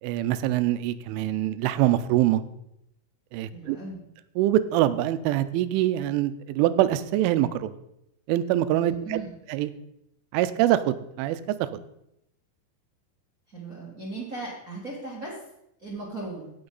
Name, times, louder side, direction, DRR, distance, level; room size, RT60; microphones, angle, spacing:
voice 1, 0.0-2.4 3.3-3.8 4.4-7.8 8.3-9.2 9.5-9.7 10.3-11.7, right 13 dB, 85° right, 13 dB, 3.1 m, -24 dB
voice 2, 3.5-4.0 8.8-9.3 13.5-15.4 15.8-16.5, right 3 dB, 40° right, -5 dB, 1.2 m, -37 dB
17.5 x 6.2 x 3.9 m, 0.79 s
omnidirectional pair, 5.5 m